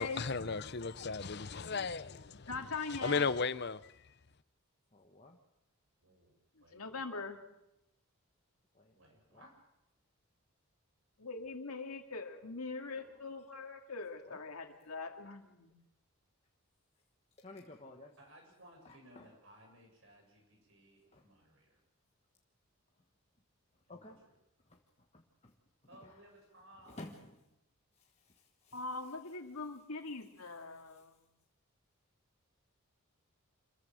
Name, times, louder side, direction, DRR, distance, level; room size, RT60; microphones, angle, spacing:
voice 1, 0.0-2.5 2.9-4.1, left 4 dB, 50° left, 0.7 m, -35 dB
voice 2, 2.5-3.3 6.6-7.4 11.2-15.7 28.7-31.2, left 3 dB, 85° left, 2.5 m, -42 dB
voice 3, 4.9-5.4 8.7-8.9 9.3-9.5 12.9-13.2 14.2-14.4 17.4-18.1 18.8-19.3 21.1-21.2 23.9-24.2 24.7-24.8 25.1-25.5 26.0-26.1 26.9-27.3 28.0-28.8 30.9-31.0, left 2 dB, 30° left, 1.4 m, -53 dB
voice 4, 6.0-6.3 6.6-7.1 8.9-9.6 18.2-21.8 23.9-24.3 25.9-27.3, right 1 dB, 60° right, 7.6 m, -60 dB
26.5 x 15.0 x 7.6 m
head